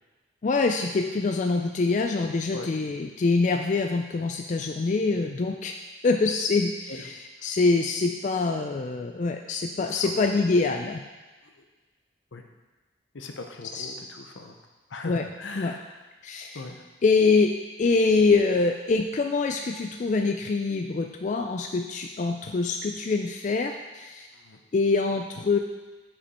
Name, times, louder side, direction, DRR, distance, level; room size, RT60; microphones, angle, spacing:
voice 1, 0.4-5.7 6.0-7.1 7.4-11.0 13.7-13.9 15.1-15.2 15.6-15.7 16.2-16.6 17.0-17.5 17.8-24.3 24.7-25.6, left 3 dB, 40° left, 4 dB, 0.3 m, -24 dB
voice 2, 13.1-14.5 14.9-16.0 16.5-16.8 24.3-24.6, left 3 dB, 80° left, 4 dB, 0.7 m, -39 dB
7.2 x 5.2 x 4.3 m, 1.2 s
head